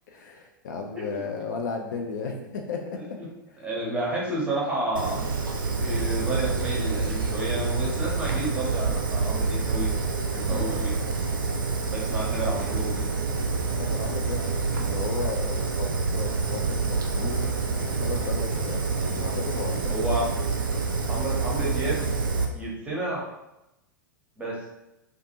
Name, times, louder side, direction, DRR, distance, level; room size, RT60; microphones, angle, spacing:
voice 1, 0.1-3.2 10.4-10.6 13.6-20.2, left 4 dB, 60° left, 2 dB, 0.4 m, -35 dB
voice 2, 3.6-9.9 10.3-11.0 11.9-13.0 19.9-20.2 21.1-22.1 22.5-23.2 24.4-24.7, right 1 dB, 10° right, -4 dB, 0.8 m, -31 dB
Fire, 5.0-22.5, right 4 dB, 75° right, 0.4 m, -27 dB
2.5 x 2.4 x 2.7 m, 0.92 s
figure-of-eight pair, 95°, 11 cm